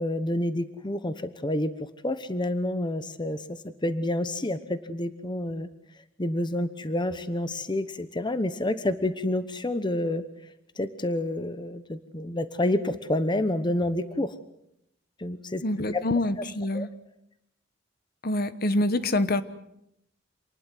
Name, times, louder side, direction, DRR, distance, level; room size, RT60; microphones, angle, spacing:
voice 1, 0.0-5.7 6.2-10.2 10.8-14.3 15.2-15.6 15.9-16.0 16.7-16.9, left 1 dB, 25° left, 12 dB, 1.0 m, -29 dB
voice 2, 15.6-16.9 18.2-19.4, left 1 dB, 55° left, 12 dB, 1.2 m, -26 dB
27.5 x 20.0 x 7.7 m, 0.79 s
head